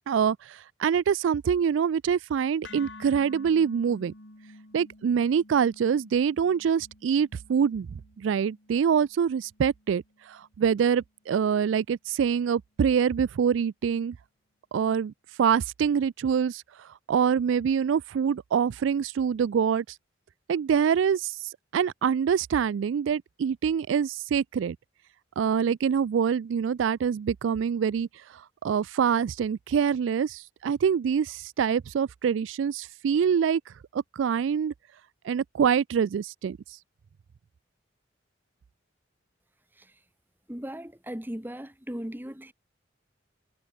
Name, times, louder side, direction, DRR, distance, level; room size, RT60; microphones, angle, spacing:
voice 1, 0.1-4.1 4.7-7.9 8.2-14.2 14.7-15.1 15.4-16.6 17.1-19.8 20.5-21.4 21.7-24.8 25.4-28.1 28.6-33.6 33.9-34.7 35.3-36.6, right 7 dB, 85° right, 0.3 m, -25 dB
sound 1, 2.6-10.8, left 2 dB, 75° left, 4.5 m, -50 dB
voice 2, 40.5-42.5, equal, 10° right, 1.6 m, -37 dB
head